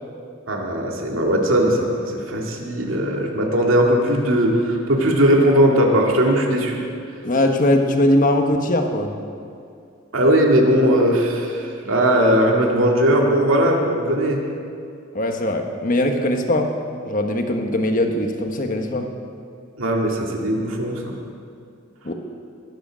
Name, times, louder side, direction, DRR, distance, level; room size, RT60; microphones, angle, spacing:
voice 1, 0.5-6.8 10.1-14.4 19.8-21.1, equal, 85° right, 0 dB, 2.2 m, -18 dB
voice 2, 7.2-9.1 15.1-16.7 17.0-19.1 22.0-22.1, left 1 dB, 40° left, 4 dB, 1.3 m, -20 dB
20.5 x 8.1 x 6.3 m, 2.4 s
head